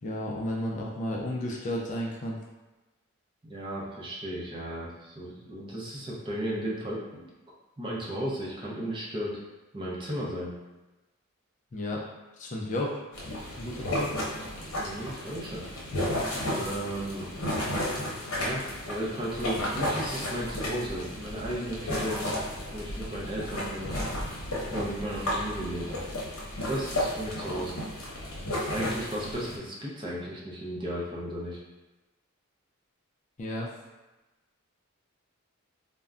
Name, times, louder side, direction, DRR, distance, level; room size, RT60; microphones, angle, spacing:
voice 1, 0.0-2.4 11.7-12.0 12.4-13.0 13.6-14.1 33.4-33.7, left 1 dB, 35° left, -2 dB, 0.4 m, -32 dB
voice 2, 3.4-7.3 7.8-9.4 9.7-10.5 13.9-14.0 14.6-15.7 16.5-17.3 18.4-22.4 22.7-24.0 24.7-26.0 26.7-27.8 28.7-31.6, right 1 dB, 20° right, -5 dB, 0.5 m, -35 dB
sound 1, 13.1-29.6, left 1 dB, 80° left, 0.8 m, -33 dB
2.3 x 2.1 x 3.5 m, 1.1 s
head